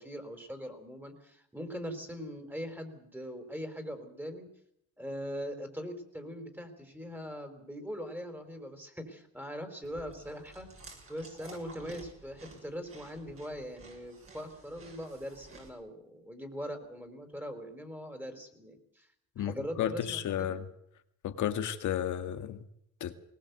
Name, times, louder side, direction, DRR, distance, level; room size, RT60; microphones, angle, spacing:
voice 1, 0.0-4.5 5.0-10.7 11.1-19.1 19.4-20.6, equal, 5° right, 7 dB, 4.1 m, -41 dB
Chewing mastication, 9.8-15.7, right 3 dB, 45° right, 7.0 m, -53 dB
voice 2, 19.4-20.7 21.2-22.6 23.0-23.1, left 10 dB, 75° left, 10 dB, 1.8 m, -33 dB
20.0 x 19.0 x 8.1 m, 0.73 s
cardioid pair, 90°, 30 cm